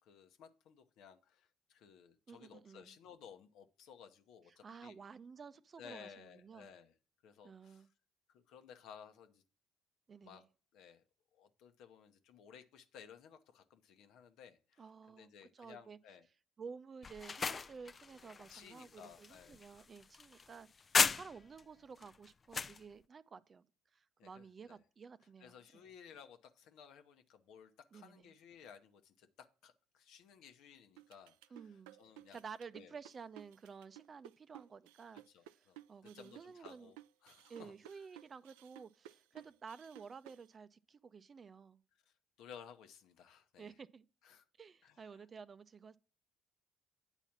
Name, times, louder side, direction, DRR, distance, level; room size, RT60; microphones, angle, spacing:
voice 1, 0.0-5.0 5.8-6.9 7.2-7.8 8.3-9.4 10.2-10.4 10.7-11.0 11.3-16.3 18.5-19.6 24.2-24.8 25.4-31.4 31.6-32.4 32.7-32.9 35.3-37.0 37.2-37.7 42.1-43.7 44.2-44.4 44.8-45.1, left 7 dB, 70° left, 1.0 m, -57 dB
voice 2, 2.3-3.0 4.5-6.7 7.4-7.9 10.1-10.5 14.8-16.0 16.6-23.7 23.9-25.8 27.9-28.3 31.5-32.0 32.3-36.9 37.5-41.8 43.6-44.1 44.6-46.0, right 5 dB, 40° right, 0.5 m, -53 dB
sound 1, 17.0-21.6 22.0-22.8, left 5 dB, 35° left, 0.3 m, -36 dB
sound 2, 31.0-40.5, right 14 dB, 90° right, 0.3 m, -57 dB
8.9 x 4.1 x 5.9 m
supercardioid pair, 75°, 0 cm